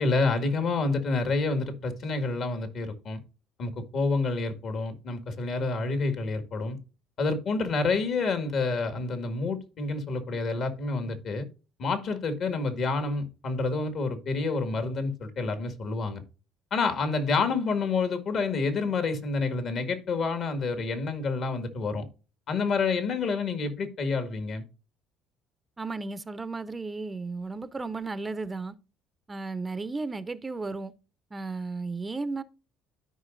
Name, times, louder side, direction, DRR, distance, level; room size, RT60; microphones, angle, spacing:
voice 1, 0.0-3.2 3.6-6.8 7.2-11.5 11.8-16.2 16.7-22.1 22.5-24.6, left 3 dB, 55° left, 1.9 m, -28 dB
voice 2, 25.8-28.7 29.3-30.9 31.3-32.4, right 3 dB, 20° right, 0.6 m, -34 dB
13.0 x 5.1 x 2.5 m
supercardioid pair, 90°, 0 cm